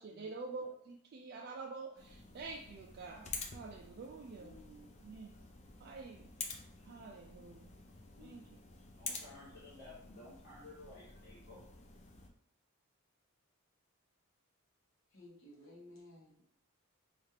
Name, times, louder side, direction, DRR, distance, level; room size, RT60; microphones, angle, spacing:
voice 1, 0.0-4.6 5.0-5.3 5.8-6.5 6.8-7.8 8.2-8.4, right 3 dB, 45° right, 1 dB, 0.3 m, -47 dB
sound 1, 2.0-12.3, left 4 dB, 30° left, 0.4 m, -49 dB
voice 2, 4.4-5.0 8.2-8.5 15.1-16.4, left 1 dB, 65° left, -4 dB, 1.3 m, -57 dB
voice 3, 8.7-11.6, left 2 dB, 45° left, -9 dB, 1.2 m, -55 dB
4.2 x 2.4 x 3.2 m, 0.69 s
head